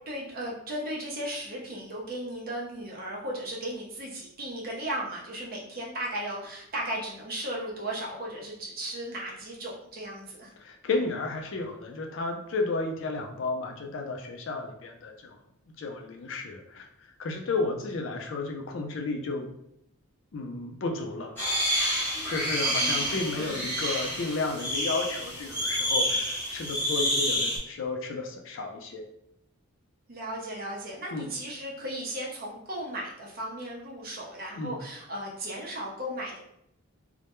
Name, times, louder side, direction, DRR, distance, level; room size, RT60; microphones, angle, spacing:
voice 1, 0.1-10.5 22.7-23.6 30.1-36.4, right 1 dB, 45° right, -3 dB, 0.6 m, -36 dB
voice 2, 10.6-15.4 15.8-19.5 20.3-21.3 22.3-29.0 31.1-31.3 34.6-34.8, left 3 dB, 60° left, 2 dB, 0.4 m, -32 dB
sound 1, 21.4-27.6, equal, 10° left, 0.8 m, -28 dB
2.1 x 2.1 x 2.9 m, 0.76 s
head